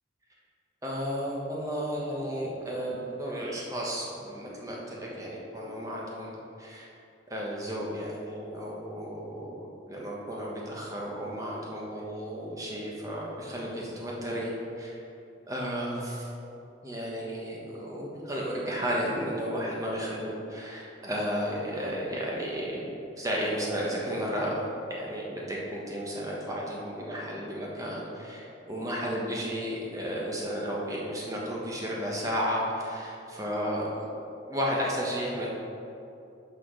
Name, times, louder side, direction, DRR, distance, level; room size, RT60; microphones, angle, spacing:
voice 1, 0.8-6.9 7.3-15.0 15.5-16.3 16.8-24.6 24.9-34.1 34.5-35.5, equal, 20° right, -4 dB, 1.2 m, -33 dB
5.9 x 4.6 x 6.3 m, 2.7 s
head